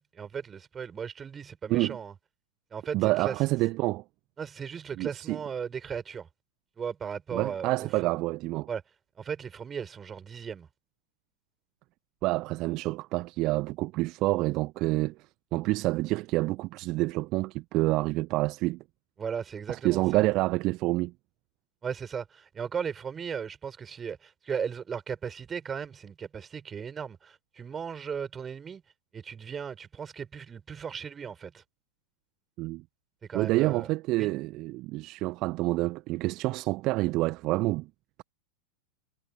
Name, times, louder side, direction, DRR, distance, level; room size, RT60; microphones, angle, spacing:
voice 1, 0.0-2.1 2.7-3.3 4.4-6.3 6.8-8.1 8.7-8.8 9.2-10.7 19.2-20.2 21.8-28.8 29.1-31.6 33.3-33.9 34.2-34.3, right 7 dB, 20° right, 5.2 m, -36 dB
voice 2, 2.9-4.0 5.0-5.4 7.3-8.7 12.2-15.1 15.5-18.8 19.7-21.1 32.6-32.8 33.3-37.9, right 20 dB, 40° right, 1.5 m, -28 dB
figure-of-eight pair, 90°, 0 cm